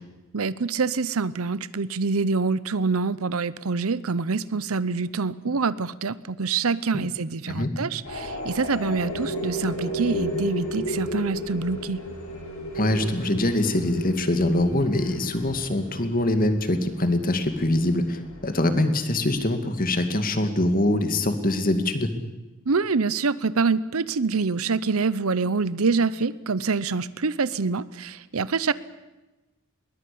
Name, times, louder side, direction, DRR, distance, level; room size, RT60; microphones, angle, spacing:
voice 1, 0.3-12.0 22.7-28.7, right 4 dB, 80° right, 17 dB, 0.8 m, -26 dB
sound 1, 8.0-19.7, equal, 75° left, 7.5 m, -34 dB
voice 2, 12.7-22.1, left 1 dB, 40° left, 8 dB, 2.3 m, -23 dB
21.5 x 20.0 x 8.6 m, 1.1 s
head